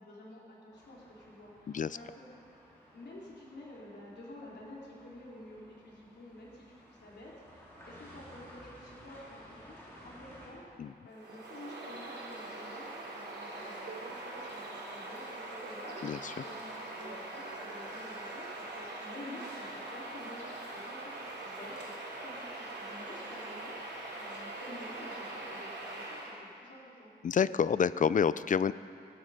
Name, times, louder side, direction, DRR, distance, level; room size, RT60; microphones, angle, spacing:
voice 1, 0.0-2.3 2.9-16.5 17.0-18.5 18.7-21.9 22.2-27.1, left 1 dB, 80° left, -5 dB, 3.9 m, -50 dB
sound 1, 0.7-10.5, equal, 15° left, 4.3 m, -56 dB
voice 2, 1.7-2.0 10.8-10.9 16.0-16.3 27.2-28.7, left 7 dB, 50° left, 16 dB, 0.4 m, -28 dB
Bird vocalization bird call bird song, 11.1-26.4, right 2 dB, 90° right, 3.1 m, -42 dB
22.5 x 12.5 x 5.2 m, 2.4 s
wide cardioid pair, 155°, 17 cm